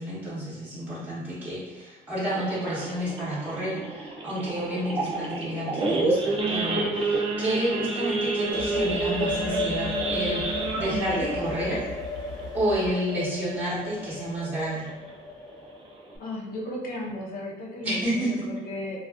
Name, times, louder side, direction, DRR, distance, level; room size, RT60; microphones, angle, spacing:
voice 1, 0.0-11.8 12.5-14.9 17.8-18.4, equal, 10° right, -10 dB, 0.8 m, -30 dB
Idling / Accelerating revving vroom / Sawing, 2.3-13.4 13.7-14.0 14.2-14.3 14.8-15.0 15.5-15.6 15.8-16.2, right 2 dB, 30° right, 0.4 m, -29 dB
sound 1, 8.4-16.1, left 2 dB, 20° left, 0.6 m, -35 dB
sound 2, 8.5-12.9, left 3 dB, 85° right, 0.5 m, -41 dB
voice 2, 16.2-19.0, left 1 dB, 60° left, -2 dB, 0.7 m, -35 dB
2.4 x 2.3 x 2.3 m, 1.1 s
cardioid pair, 110°, 17 cm